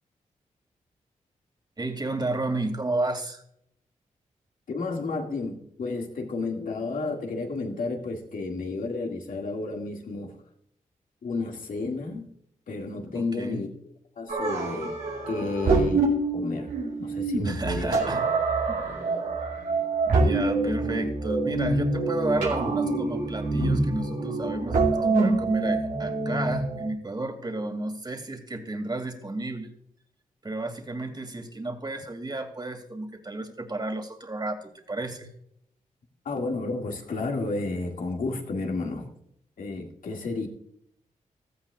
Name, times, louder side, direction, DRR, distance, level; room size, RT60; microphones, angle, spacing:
voice 1, 1.8-3.4 13.1-13.6 17.4-18.3 18.7-19.3 20.1-29.7 30.4-35.3, right 2 dB, 30° right, 4 dB, 2.6 m, -32 dB
voice 2, 4.7-10.3 11.2-12.3 12.7-13.7 14.2-15.0 15.3-16.7 17.0-18.0 36.3-39.1 39.6-40.5, left 3 dB, 75° left, 2 dB, 2.3 m, -31 dB
sound 1, 14.3-26.9, right 3 dB, 90° right, 2.6 m, -26 dB
16.5 x 14.0 x 2.5 m, 0.72 s
cardioid pair, 50°, 14 cm